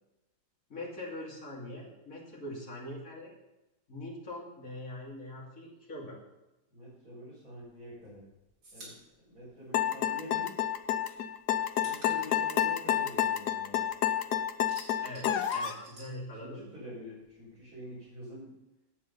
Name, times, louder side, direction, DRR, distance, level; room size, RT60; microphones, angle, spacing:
voice 1, 0.7-3.3 3.9-6.2 15.0-16.7, left 1 dB, 50° left, -3 dB, 3.2 m, -42 dB
voice 2, 6.7-8.3 8.7-8.9 9.3-10.6 11.8-13.9 16.3-18.5, left 1 dB, 55° right, -11 dB, 5.6 m, -46 dB
sound 1, 7.6-10.4 10.7-14.0 14.3-16.9 17.1-18.3, right 2 dB, 75° right, 4.2 m, -53 dB
sound 2, 9.7-15.8, left 10 dB, 80° left, 1.3 m, -29 dB
10.5 x 8.1 x 5.5 m, 0.96 s
omnidirectional pair, 1.8 m